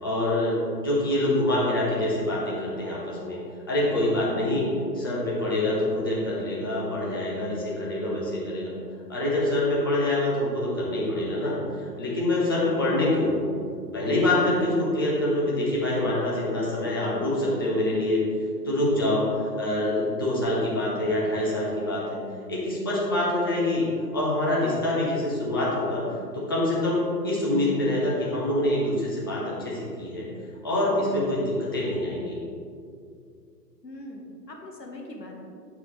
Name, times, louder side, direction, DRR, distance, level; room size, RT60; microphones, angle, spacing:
voice 1, 0.0-3.4 3.7-4.7 4.9-8.7 9.1-13.5 13.9-18.2 18.6-22.2 22.5-23.8 24.1-26.0 26.3-30.3 30.6-32.4, left 1 dB, 15° left, -6 dB, 0.5 m, -25 dB
voice 2, 33.8-35.4, left 1 dB, 80° left, 0 dB, 1.3 m, -42 dB
7.8 x 4.6 x 3.2 m, 2.3 s
figure-of-eight pair, 125°, 49 cm